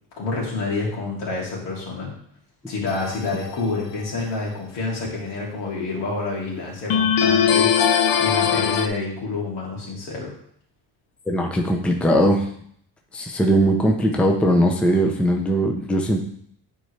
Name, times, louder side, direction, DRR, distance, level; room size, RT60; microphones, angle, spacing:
voice 1, 0.2-2.1 2.7-10.3, left 3 dB, 80° left, -3 dB, 2.8 m, -28 dB
sound 1, 2.9-3.5 6.9-8.9, left 7 dB, 55° left, 0.6 m, -20 dB
voice 2, 11.3-12.5 13.1-16.2, right 1 dB, 5° left, 2 dB, 0.6 m, -20 dB
9.2 x 4.5 x 3.2 m, 0.65 s
cardioid pair, 145°, 43 cm